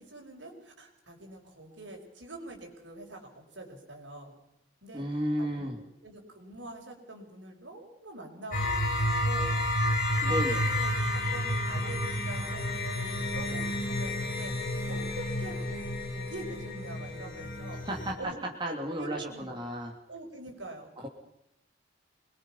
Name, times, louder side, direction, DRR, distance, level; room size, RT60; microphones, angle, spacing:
voice 1, 0.0-4.3 4.8-5.0 5.4-5.7 6.0-9.8 10.3-14.5 14.9-15.9 16.1-17.8 18.2-19.6 20.1-21.1, right 2 dB, 75° right, 2 dB, 5.4 m, -45 dB
voice 2, 4.9-5.8 10.2-10.6 17.8-18.1 18.6-19.9 21.0-21.1, equal, 25° right, -1 dB, 3.1 m, -33 dB
sound 1, 8.5-18.1, left 1 dB, 45° left, 4.2 m, -30 dB
26.0 x 21.0 x 5.8 m, 0.84 s
head